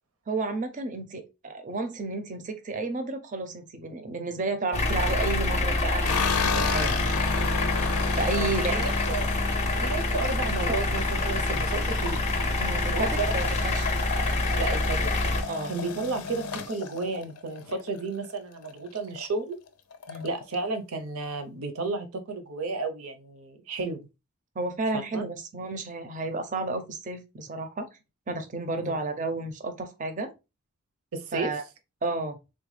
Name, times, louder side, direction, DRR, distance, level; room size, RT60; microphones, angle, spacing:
voice 1, 0.3-6.9 8.2-8.9 10.7-10.8 11.4-11.5 11.8-11.9 12.6-13.9 15.5-15.7 17.1-17.2 20.1-20.3 24.6-27.9 28.3-30.3 31.3-31.6 32.0-32.4, right 3 dB, 35° right, 0.5 m, -32 dB
sound 1, 4.7-15.4, left 2 dB, 30° left, 0.5 m, -26 dB
sound 2, 6.0-18.3 18.6-19.3 19.5-19.6 19.9-20.6, left 5 dB, 85° left, 0.5 m, -34 dB
voice 2, 8.3-9.3 9.7-12.6 12.9-13.6 14.6-15.2 15.7-19.6 20.2-24.0 24.9-25.2 28.8-29.0 31.1-31.5, right 3 dB, 75° right, 0.6 m, -33 dB
3.7 x 2.2 x 3.1 m
head